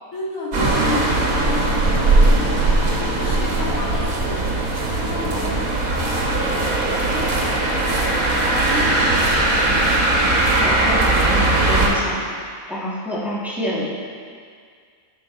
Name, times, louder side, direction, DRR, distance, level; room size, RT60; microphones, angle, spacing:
voice 1, 0.1-4.5 4.8-6.5 6.8-10.0 10.4-10.9, left 1 dB, 80° left, -7 dB, 2.5 m, -32 dB
sound 1, 0.5-11.9, right 2 dB, 80° right, 1.7 m, -19 dB
voice 2, 10.6-12.2 12.7-13.9, left 1 dB, ahead, -8 dB, 1.7 m, -28 dB
12.5 x 6.3 x 3.7 m, 2.1 s
omnidirectional pair, 1.4 m